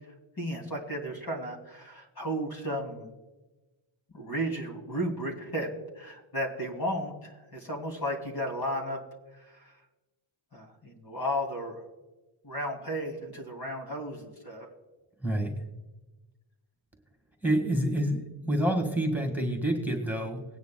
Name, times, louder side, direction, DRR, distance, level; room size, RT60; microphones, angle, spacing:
voice 1, 0.4-3.1 4.1-5.7 6.0-9.0 9.5-9.7 10.5-11.8 12.4-14.7, equal, 45° left, 1 dB, 2.7 m, -34 dB
voice 2, 15.2-15.5 17.4-20.4, right 1 dB, 5° right, 2 dB, 1.7 m, -28 dB
19.5 x 9.4 x 2.2 m, 1.1 s
wide cardioid pair, 120°, 50 cm